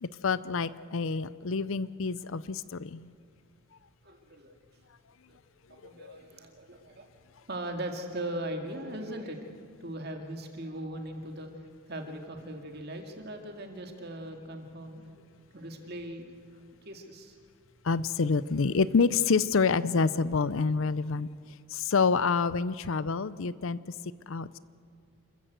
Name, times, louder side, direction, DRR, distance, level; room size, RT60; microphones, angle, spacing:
voice 1, 0.0-3.1 6.0-6.2 17.8-21.3 21.7-23.8 24.3-24.6, left 4 dB, 60° left, 0.5 m, -27 dB
voice 2, 4.0-4.6 5.3-5.4 5.7-7.1 7.5-9.5 9.8-15.1 15.5-16.2 16.8-17.4, right 1 dB, 45° right, 2.2 m, -39 dB
27.5 x 14.5 x 8.0 m
head